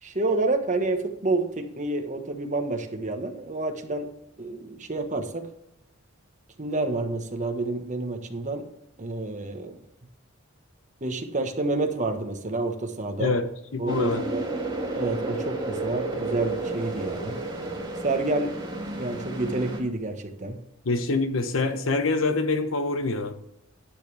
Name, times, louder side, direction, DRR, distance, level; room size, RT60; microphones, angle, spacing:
voice 1, 0.0-4.1 4.4-5.5 6.6-8.6 9.0-9.8 11.0-13.4 13.8-14.5 14.9-17.4 18.0-18.5 19.0-20.6, right 2 dB, 35° right, 5 dB, 1.3 m, -29 dB
voice 2, 13.2-14.2 20.9-23.4, left 3 dB, 65° left, 9 dB, 0.9 m, -25 dB
sound 1, 13.9-19.8, right 2 dB, 20° right, 2.2 m, -32 dB
10.5 x 10.0 x 3.4 m, 0.77 s
head